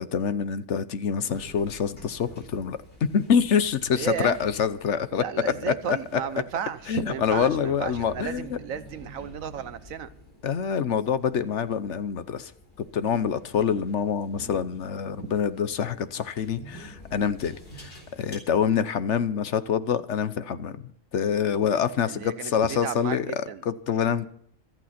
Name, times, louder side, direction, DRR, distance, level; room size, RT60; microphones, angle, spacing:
voice 1, 0.0-2.8 3.1-5.2 5.7-5.8 6.9-8.5 10.4-12.5 12.9-20.8 21.1-23.3 23.7-24.3, left 7 dB, 65° left, 13 dB, 1.1 m, -26 dB
sound 1, 1.3-18.3, equal, 45° left, 4.3 m, -48 dB
voice 2, 3.9-4.4 5.1-10.1 15.2-15.3 22.1-23.6, right 8 dB, 80° right, 13 dB, 1.4 m, -34 dB
25.5 x 9.0 x 4.3 m, 0.65 s
omnidirectional pair, 1.4 m